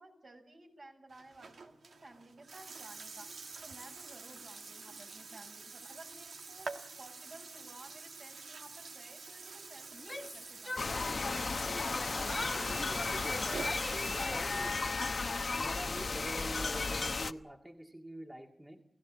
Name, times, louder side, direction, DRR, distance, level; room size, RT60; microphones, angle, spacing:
voice 1, 0.0-3.3 3.6-11.7, right 2 dB, 50° right, 3 dB, 6.4 m, -55 dB
Burping eructation, 1.1-14.2, right 4 dB, 80° right, 1.8 m, -47 dB
Yell, 9.9-11.5 11.9-14.7, left 2 dB, 20° left, 1.7 m, -43 dB
sound 1, 10.8-17.3, left 3 dB, 50° left, 0.9 m, -34 dB
voice 2, 12.1-14.8 15.5-18.8, right 1 dB, 10° right, 1 dB, 2.0 m, -46 dB
29.0 x 17.0 x 7.2 m, 0.71 s
wide cardioid pair, 80°, 0 cm